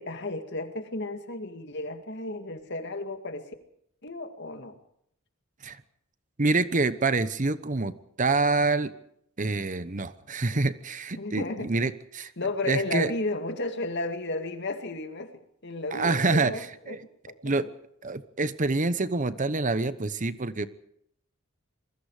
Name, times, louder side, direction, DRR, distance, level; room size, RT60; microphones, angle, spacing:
voice 1, 0.0-3.6 4.0-4.7 11.2-11.7 12.4-15.3 15.6-17.0 17.3-17.7, left 2 dB, 55° left, 7 dB, 2.3 m, -33 dB
voice 2, 6.4-7.9 8.2-8.9 9.4-12.3 12.6-13.1 15.9-17.0 17.4-17.7 18.0-20.7, right 3 dB, 35° right, 14 dB, 0.9 m, -26 dB
27.0 x 21.0 x 5.0 m, 0.73 s
head